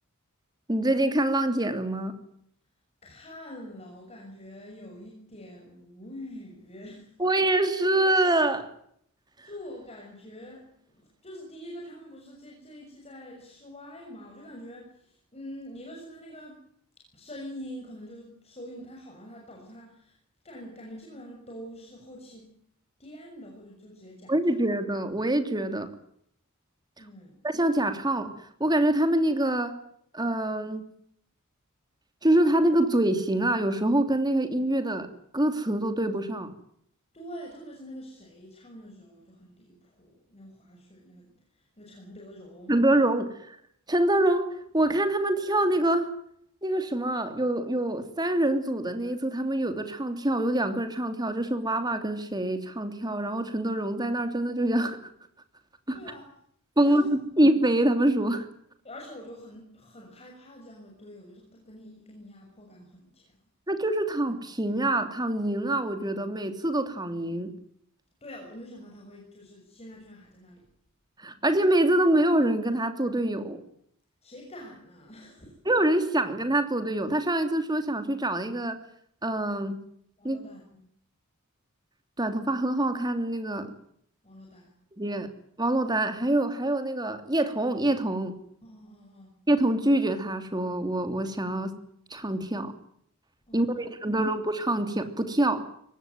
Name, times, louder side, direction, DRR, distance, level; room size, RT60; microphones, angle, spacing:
voice 1, 0.7-2.2 7.2-8.7 24.3-25.9 27.4-28.3 28.6-29.8 30.1-30.8 32.2-35.1 35.3-36.5 42.7-43.3 43.9-46.1 46.6-55.0 55.9-56.0 56.8-57.0 57.4-58.5 63.7-67.5 71.2-73.6 75.7-78.8 79.2-79.8 80.2-80.4 82.2-83.7 85.0-85.3 85.6-88.3 89.5-91.8 92.1-92.7 93.5-95.7, right 1 dB, 20° right, 8 dB, 3.0 m, -25 dB
voice 2, 3.0-7.2 9.4-16.6 17.0-20.2 20.4-22.5 23.0-24.3 27.0-27.5 37.1-42.8 55.9-56.3 56.8-57.1 58.8-63.4 68.2-70.6 74.2-75.6 80.2-80.9 84.2-84.7 88.6-89.3 93.5-94.3, equal, 30° left, 0 dB, 6.5 m, -45 dB
23.5 x 19.0 x 9.2 m, 0.68 s
head